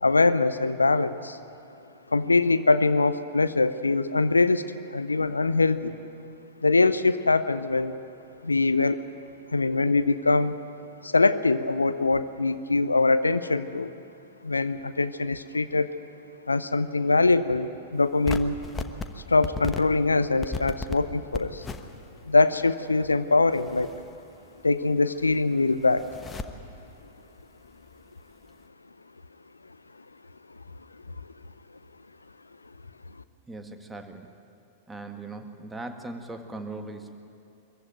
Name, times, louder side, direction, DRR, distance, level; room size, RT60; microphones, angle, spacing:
voice 1, 0.0-1.4 2.1-6.0 6.6-8.0 8.4-9.0 9.5-10.6 11.0-13.9 14.4-16.0 16.5-18.6 19.3-21.7 22.2-23.9 24.6-26.1, left 3 dB, 80° left, 13 dB, 0.6 m, -23 dB
sound 1, 18.2-19.1 19.4-19.8 20.4-21.0 21.3-22.2 22.6-22.7 23.5-24.7 25.0-25.1 25.3-26.5 27.7-28.1, left 4 dB, 15° left, 1.3 m, -35 dB
voice 2, 33.5-34.3 34.9-37.2, right 2 dB, 10° right, 6 dB, 1.7 m, -39 dB
22.5 x 15.0 x 9.1 m, 2.7 s
figure-of-eight pair, 95°, 0 cm